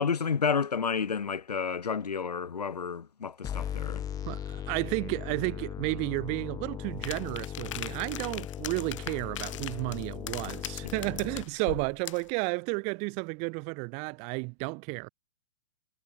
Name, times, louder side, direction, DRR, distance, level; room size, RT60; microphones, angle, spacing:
voice 1, 0.0-4.1, left 6 dB, 80° left, 4.4 m, -30 dB
sound 1, 3.4-11.4, left 9 dB, 20° left, 4.5 m, -38 dB
voice 2, 4.2-15.1, right 33 dB, 35° right, 7.6 m, -32 dB
sound 2, 7.0-12.3, left 13 dB, 50° left, 5.1 m, -40 dB
hypercardioid pair, 135°, 20 cm